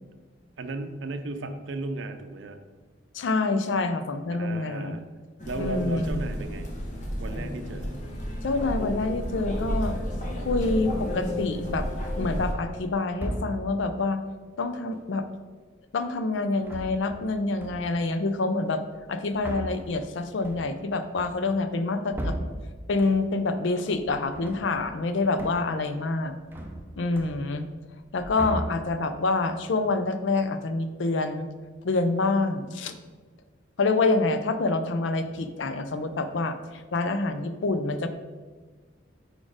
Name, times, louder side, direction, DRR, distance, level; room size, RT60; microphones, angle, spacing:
voice 1, 0.6-2.6 4.3-5.0 5.5-6.7 7.2-7.9, right 2 dB, 70° right, 8 dB, 0.5 m, -35 dB
voice 2, 3.1-5.0 5.6-6.2 8.4-10.0 10.4-11.8 12.2-14.2 14.6-15.2 15.9-18.8 19.1-22.3 22.9-26.4 27.0-27.7 28.1-31.5 31.8-32.9 33.8-36.6 36.9-38.1, left 3 dB, 70° left, 10 dB, 0.5 m, -27 dB
sound 1, 5.4-12.5, equal, 40° left, 1.0 m, -32 dB
sound 2, 10.6-11.1 11.8-12.4 13.1-13.9 16.5-17.3 17.6-18.1 18.9-23.5 23.9-25.1 25.4-25.9 26.1-27.7 28.0-29.2, right 1 dB, 10° right, 0.6 m, -38 dB
4.8 x 4.2 x 4.8 m, 1.4 s
head